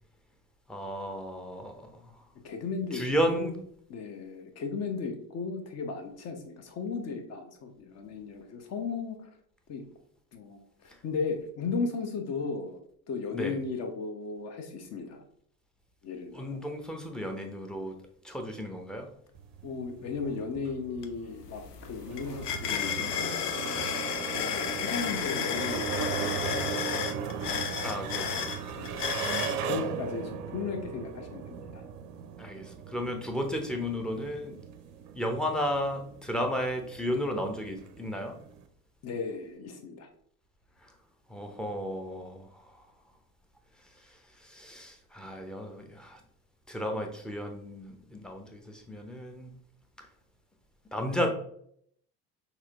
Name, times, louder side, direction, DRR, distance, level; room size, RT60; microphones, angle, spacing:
voice 1, 0.7-2.2 2.9-3.5 13.3-13.6 16.3-18.0 18.2-19.1 27.8-28.6 32.4-34.6 35.1-38.3 40.8-40.9 41.3-42.9 44.0-46.2 46.7-49.5 50.0-50.1 50.9-51.3, equal, ahead, 3 dB, 0.6 m, -33 dB
voice 2, 2.4-3.6 3.9-9.3 9.7-9.8 10.3-12.8 13.1-15.2 16.0-16.6 19.6-23.4 24.4-27.2 28.7-29.0 29.5-31.8 39.0-40.1, left 4 dB, 35° left, 5 dB, 0.8 m, -36 dB
sound 1, 19.3-38.7, right 7 dB, 40° right, 0.5 m, -38 dB
sound 2, 21.0-21.1 21.4-29.6, left 8 dB, 75° left, 0.6 m, -33 dB
5.8 x 2.8 x 2.4 m, 0.65 s
figure-of-eight pair, 65°, 47 cm